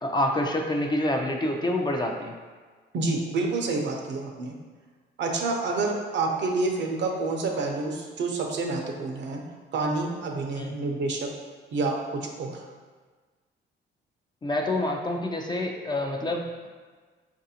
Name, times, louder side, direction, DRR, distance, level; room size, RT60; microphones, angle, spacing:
voice 1, 0.0-2.3 10.6-10.7 14.4-16.7, left 1 dB, 20° left, 2 dB, 0.4 m, -27 dB
voice 2, 2.9-4.5 5.2-9.4 9.7-11.3 11.7-12.6, right 3 dB, 65° right, 1 dB, 0.6 m, -28 dB
4.7 x 2.6 x 2.8 m, 1.4 s
cardioid pair, 90°, 20 cm